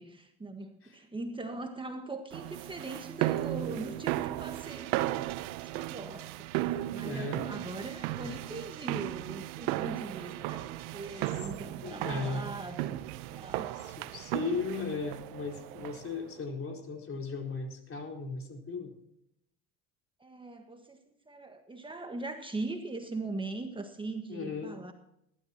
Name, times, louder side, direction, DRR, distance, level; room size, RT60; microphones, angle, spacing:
voice 1, 0.0-5.4 5.8-14.1 20.2-21.0 21.3-24.9, right 2 dB, 15° right, 5 dB, 1.5 m, -41 dB
sound 1, 2.3-16.2, right 15 dB, 90° right, 0.8 m, -35 dB
voice 2, 7.0-7.4 8.2-8.3 11.8-12.4 13.8-18.9 24.3-24.8, left 4 dB, 45° left, 2 dB, 4.3 m, -36 dB
20.0 x 12.5 x 2.9 m, 0.78 s
supercardioid pair, 95°, 32 cm